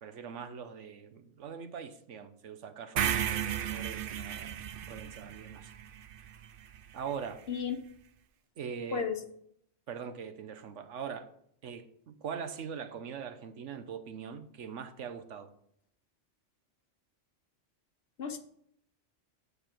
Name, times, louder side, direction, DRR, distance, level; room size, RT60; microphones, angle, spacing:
voice 1, 0.0-5.7 6.9-7.4 8.6-9.1 9.9-11.3 11.6-15.5, right 7 dB, 80° right, 10 dB, 1.2 m, -42 dB
sound 1, 3.0-7.1, right 10 dB, 60° right, 0.6 m, -35 dB
voice 2, 8.9-9.2 18.2-18.4, left 7 dB, 60° left, 8 dB, 1.1 m, -33 dB
8.5 x 6.9 x 4.4 m, 0.69 s
omnidirectional pair, 1.2 m